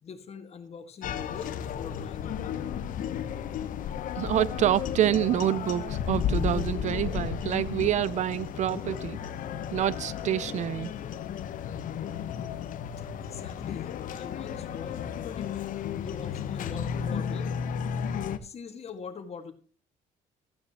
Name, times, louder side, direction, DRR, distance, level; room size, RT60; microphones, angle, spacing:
voice 1, 0.0-2.6 12.3-12.4 13.2-17.5 18.4-19.5, left 6 dB, 45° left, 1.8 m, -43 dB
sound 1, 1.0-18.4, left 8 dB, 65° left, 1.0 m, -33 dB
voice 2, 4.2-9.2 9.7-10.9, right 11 dB, 55° right, 0.4 m, -27 dB
14.5 x 9.8 x 2.9 m
cardioid pair, 110°, 15 cm